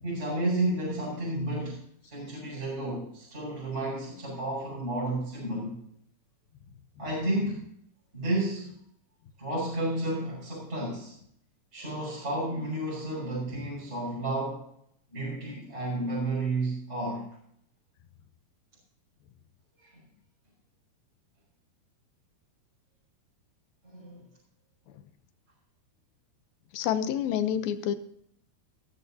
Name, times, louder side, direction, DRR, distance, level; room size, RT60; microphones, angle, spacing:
voice 1, 0.0-5.8 7.0-7.6 8.1-8.7 9.4-11.1 11.7-14.6 15.1-17.3 19.8-19.9 23.9-24.2, right 1 dB, 15° right, -5 dB, 6.0 m, -31 dB
voice 2, 26.7-27.9, left 9 dB, 75° left, 11 dB, 2.4 m, -28 dB
18.0 x 13.5 x 2.8 m, 0.70 s
omnidirectional pair, 4.7 m